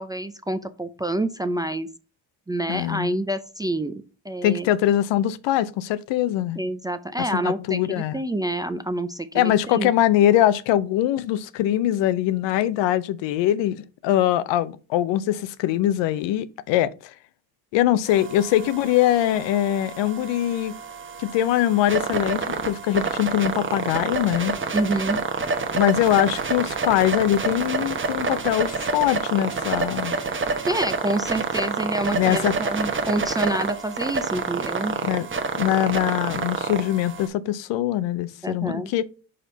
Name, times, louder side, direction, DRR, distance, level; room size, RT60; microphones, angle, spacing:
voice 1, 0.0-1.9 2.5-4.7 6.6-9.9 24.7-25.2 30.6-35.0 38.4-38.9, right 1 dB, 10° right, 0.3 m, -27 dB
voice 2, 2.7-3.1 4.4-6.6 7.4-8.2 9.3-17.1 17.7-20.7 21.2-24.5 25.7-30.2 32.1-32.5 35.1-35.3 35.5-39.0, left 12 dB, 80° left, 0.6 m, -22 dB
sound 1, 18.1-37.3, right 4 dB, 25° right, 1.0 m, -28 dB
5.0 x 4.3 x 5.4 m
cardioid pair, 100°, 43 cm